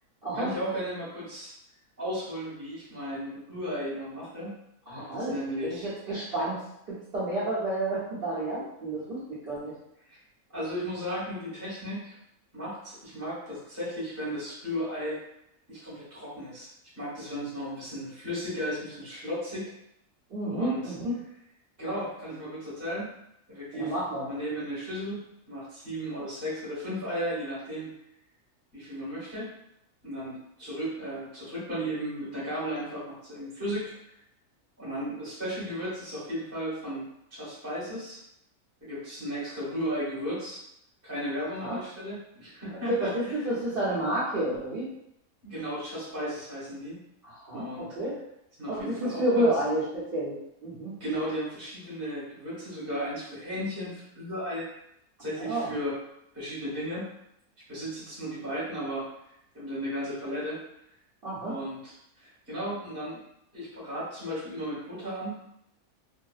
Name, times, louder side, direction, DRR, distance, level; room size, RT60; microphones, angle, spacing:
voice 1, 0.3-1.5 2.0-4.6 4.9-5.9 10.1-10.2 10.5-12.1 12.5-15.2 15.7-16.7 17.0-19.7 20.5-20.9 21.8-23.2 23.5-24.0 24.2-28.0 28.7-29.6 30.0-34.1 34.8-38.2 38.8-40.6 41.0-43.5 45.4-47.0 47.5-47.9 48.6-49.5 51.0-54.7 55.2-56.0 56.3-57.1 57.7-59.1 59.5-60.6 61.4-63.2 63.5-65.5, equal, 10° right, -9 dB, 1.0 m, -35 dB
voice 2, 4.9-5.3 5.6-6.6 6.9-9.7 20.3-21.1 23.7-24.2 41.6-41.8 42.9-44.9 47.2-48.2 48.7-50.4 50.6-50.9 55.3-55.7 61.2-61.5, right 1 dB, 45° right, -12 dB, 0.9 m, -30 dB
2.6 x 2.1 x 2.3 m, 0.78 s
omnidirectional pair, 1.6 m